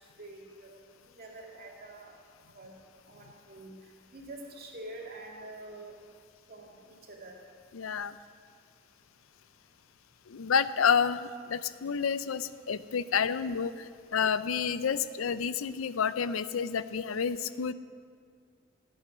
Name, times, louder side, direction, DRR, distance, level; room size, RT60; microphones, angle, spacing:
voice 1, 0.2-0.8 1.2-2.2 2.5-2.8 3.1-3.8 4.1-5.9 6.5-7.4, right 2 dB, 50° right, -1 dB, 2.2 m, -46 dB
voice 2, 7.7-8.2 10.3-17.7, left 6 dB, 80° left, 14 dB, 0.5 m, -29 dB
16.5 x 8.6 x 6.2 m, 2.1 s
head